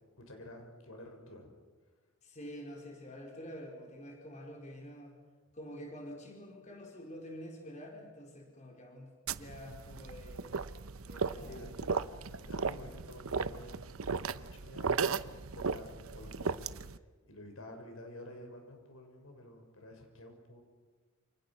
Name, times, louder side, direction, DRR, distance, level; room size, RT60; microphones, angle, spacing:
voice 1, 0.2-1.5 11.4-17.0 17.3-20.6, left 1 dB, 85° left, 4 dB, 6.4 m, -51 dB
voice 2, 2.2-5.2 5.5-10.5 11.0-12.1 12.4-12.5, equal, 35° left, 1 dB, 4.5 m, -48 dB
sound 1, 9.3-17.0, right 5 dB, 90° right, 0.9 m, -36 dB
28.5 x 28.5 x 6.3 m, 1.3 s
head